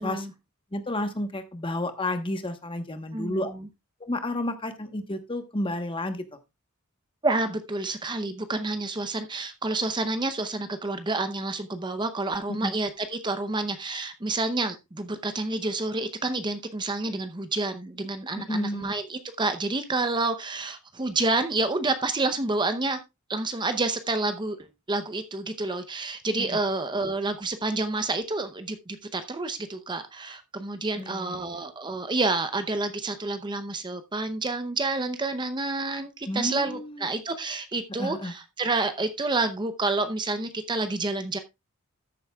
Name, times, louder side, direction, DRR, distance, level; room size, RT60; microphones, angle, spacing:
voice 1, 0.0-0.3 3.1-3.7 7.2-23.0 23.3-41.4, right 2 dB, 20° right, 9 dB, 0.7 m, -29 dB
voice 2, 0.7-3.5 4.0-6.2 12.5-12.7 18.5-18.9 26.4-26.6 31.0-31.5 36.3-37.1 38.0-38.3, left 1 dB, 25° left, 8 dB, 1.1 m, -31 dB
13.5 x 7.9 x 2.3 m, 0.23 s
head